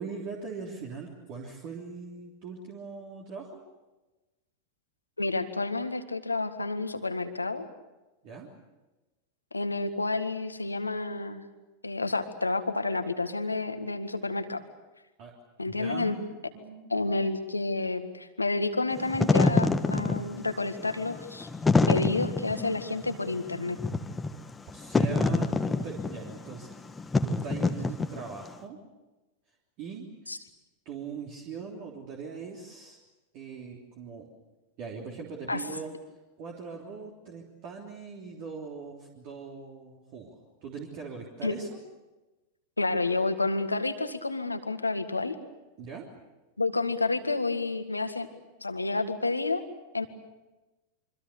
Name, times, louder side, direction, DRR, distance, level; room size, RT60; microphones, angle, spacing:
voice 1, 0.0-3.6 8.2-8.5 15.2-15.3 15.6-16.3 16.5-17.0 24.7-28.8 29.8-30.1 30.8-33.0 33.3-34.3 34.8-35.9 36.4-41.8 45.8-46.1, right 5 dB, 40° right, -1 dB, 3.3 m, -41 dB
voice 2, 5.2-7.7 9.5-11.4 11.8-14.6 15.6-16.2 16.9-21.5 21.9-23.8 30.3-30.4 35.5-35.6 41.4-41.5 42.8-45.4 46.6-48.3 48.6-49.6 49.9-50.1, left 3 dB, 80° left, 9 dB, 1.7 m, -30 dB
Wind / Fire, 19.0-28.5, left 3 dB, 10° left, 1.4 m, -27 dB
27.0 x 24.5 x 6.8 m, 1.1 s
figure-of-eight pair, 90°, 0 cm